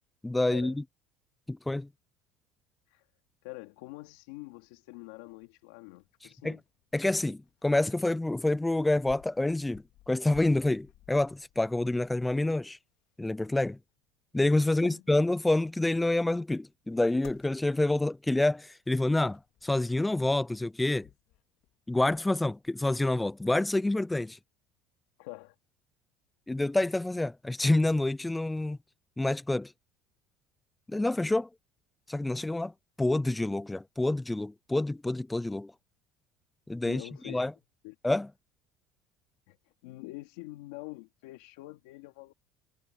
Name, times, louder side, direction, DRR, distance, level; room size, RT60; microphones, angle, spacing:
voice 1, 0.2-0.8 1.5-1.9 6.4-6.6 6.9-12.8 13.2-13.8 14.3-21.1 21.9-24.4 26.5-28.8 29.2-29.7 30.9-31.5 32.1-32.7 33.0-35.7 36.7-37.5 38.0-38.3, left 2 dB, 10° left, 0.4 m, -27 dB
voice 2, 3.4-6.6 14.8-15.0 25.2-25.5 36.8-37.4 37.8-37.9 39.5-39.6 39.8-42.3, left 21 dB, 90° left, 2.8 m, -45 dB
sound 1, 4.0-22.8, left 15 dB, 65° left, 3.3 m, -60 dB
supercardioid pair, 115°, 0 cm